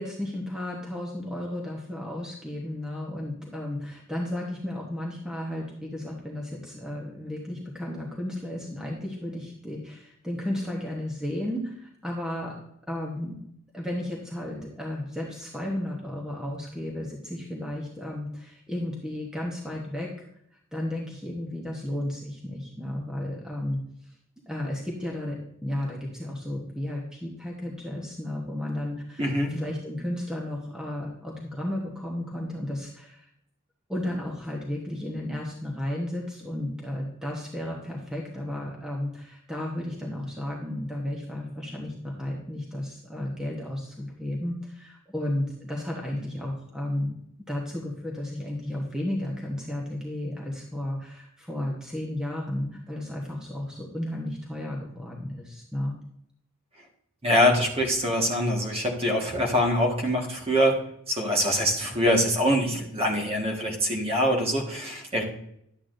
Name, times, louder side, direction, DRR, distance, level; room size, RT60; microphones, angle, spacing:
voice 1, 0.0-12.6 12.9-13.4 13.7-20.1 20.7-23.8 24.5-33.3 33.9-47.2 47.5-55.9, left 1 dB, 5° right, -2 dB, 1.1 m, -33 dB
voice 2, 29.2-29.5 57.2-65.2, equal, 30° right, 1 dB, 1.6 m, -24 dB
11.0 x 8.2 x 2.6 m, 0.73 s
head